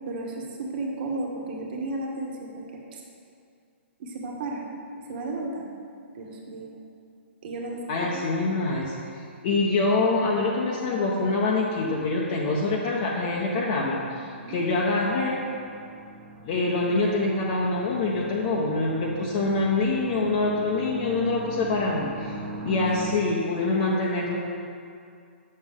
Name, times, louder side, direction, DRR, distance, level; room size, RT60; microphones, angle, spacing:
voice 1, 0.1-3.0 4.0-4.6 5.1-5.6 6.1-6.8 7.4-8.2 14.4-14.6, right 2 dB, 50° right, 0 dB, 1.4 m, -34 dB
voice 2, 7.9-15.4 16.4-24.4, left 3 dB, 40° left, -4 dB, 0.9 m, -25 dB
sound 1, 10.8-23.1, right 2 dB, 30° right, 1.6 m, -42 dB
8.5 x 6.5 x 3.6 m, 2.4 s
hypercardioid pair, 140°, 7 cm